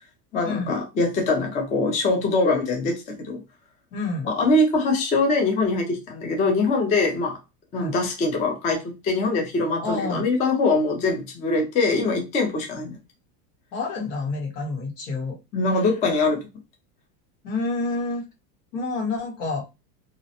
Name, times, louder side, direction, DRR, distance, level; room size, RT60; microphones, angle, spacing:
voice 1, 0.3-3.4 4.2-7.4 7.7-13.0 15.5-16.5, left 3 dB, 15° left, 0.3 m, -23 dB
voice 2, 3.9-4.3 7.7-7.9 9.8-10.2 13.7-15.4 17.4-18.2 18.7-19.6, left 3 dB, 80° left, 1.3 m, -28 dB
2.5 x 2.0 x 2.7 m
supercardioid pair, 130°, 46 cm